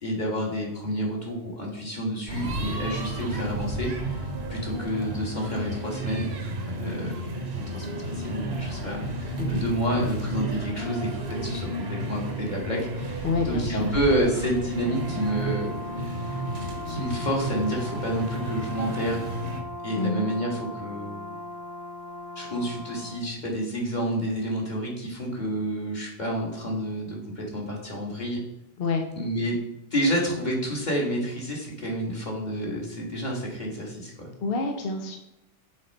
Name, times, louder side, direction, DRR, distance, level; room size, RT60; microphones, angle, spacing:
voice 1, 0.0-4.2 4.5-6.3 6.7-7.1 7.7-15.7 15.9-16.4 16.9-19.3 19.8-21.2 22.4-28.4 29.1-29.5 29.9-34.3, equal, 40° left, -2 dB, 1.9 m, -29 dB
sound 1, 2.3-19.6, right 1 dB, 60° right, 1.3 m, -32 dB
voice 2, 13.2-13.9 20.0-20.3 28.8-29.0 34.4-35.2, left 4 dB, 55° left, 3 dB, 0.9 m, -28 dB
Brass instrument, 14.6-23.3, left 1 dB, 20° left, 0.9 m, -39 dB
6.4 x 4.3 x 5.3 m, 0.89 s
omnidirectional pair, 1.2 m